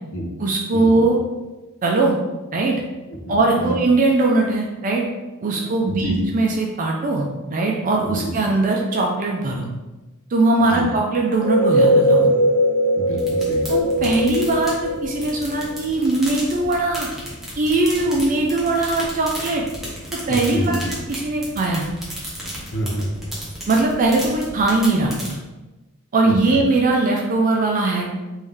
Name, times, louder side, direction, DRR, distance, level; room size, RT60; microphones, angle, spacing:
voice 1, 0.4-1.2 1.8-2.2 2.5-2.8 3.3-5.0 5.4-9.7 10.3-12.3 13.7-17.1 17.6-19.6 20.1-21.9 23.7-25.4 26.1-28.2, right 2 dB, 40° right, 0 dB, 0.4 m, -20 dB
voice 2, 5.9-6.2 8.2-8.3 10.7-10.9 13.0-13.7 14.0-14.1 20.3-20.9 22.7-23.1 26.2-26.6, right 1 dB, 60° left, 1 dB, 0.7 m, -28 dB
sound 1, 11.3-15.9, equal, 35° left, 0.9 m, -19 dB
sound 2, 13.2-25.3, equal, ahead, 1.0 m, -34 dB
3.5 x 2.6 x 3.4 m, 1.1 s
head